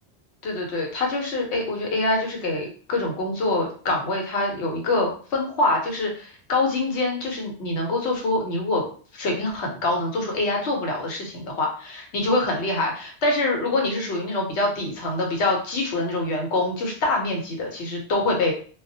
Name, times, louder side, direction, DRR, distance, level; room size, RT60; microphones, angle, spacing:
voice 1, 0.4-8.9 9.1-18.5, left 2 dB, 80° left, 0 dB, 1.0 m, -25 dB
2.3 x 2.0 x 2.6 m, 0.42 s
omnidirectional pair, 1.1 m